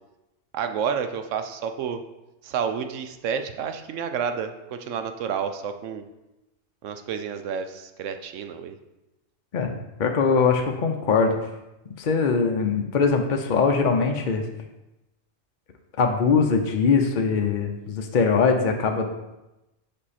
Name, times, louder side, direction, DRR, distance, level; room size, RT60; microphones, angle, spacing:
voice 1, 0.5-2.0 2.4-6.1 6.8-8.8, right 7 dB, 75° right, 8 dB, 0.9 m, -30 dB
voice 2, 9.5-11.4 12.0-14.4 16.0-19.1, left 5 dB, 50° left, 3 dB, 0.6 m, -22 dB
5.5 x 5.3 x 4.2 m, 0.98 s
omnidirectional pair, 1.3 m